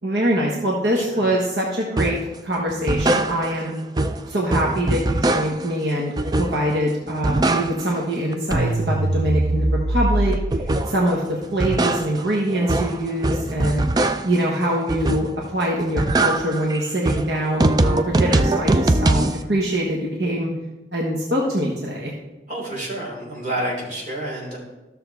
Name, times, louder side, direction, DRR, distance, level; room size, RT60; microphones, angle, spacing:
voice 1, 0.0-3.8 4.3-13.8 14.2-20.5 20.9-22.1, right 1 dB, 80° right, -2 dB, 1.3 m, -24 dB
sound 1, 2.0-2.3 2.7-3.7 4.0-5.8 6.2-6.8 7.1-8.0 8.3-11.1 11.4-14.5 14.9-15.5 15.8-19.4, right 2 dB, 20° right, 0.3 m, -22 dB
voice 2, 22.5-24.6, right 1 dB, 45° right, -4 dB, 3.5 m, -29 dB
13.0 x 6.7 x 3.5 m, 1.0 s
head